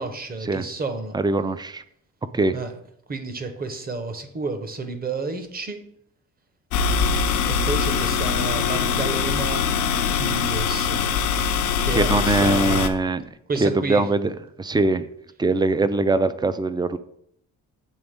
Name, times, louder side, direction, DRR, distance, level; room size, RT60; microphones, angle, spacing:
voice 1, 0.0-1.1 2.5-2.7 3.1-5.8 7.4-9.6 10.1-11.0 11.8-12.9 13.5-14.0, right 3 dB, 30° right, 7 dB, 1.0 m, -30 dB
voice 2, 1.1-1.8 2.3-2.6 11.9-13.2 13.6-15.0 15.4-17.0, right 3 dB, 15° right, 13 dB, 0.4 m, -22 dB
sound 1, 6.7-12.9, left 6 dB, 80° left, 0.6 m, -23 dB
8.2 x 3.5 x 3.5 m, 0.71 s
cardioid pair, 90°, 30 cm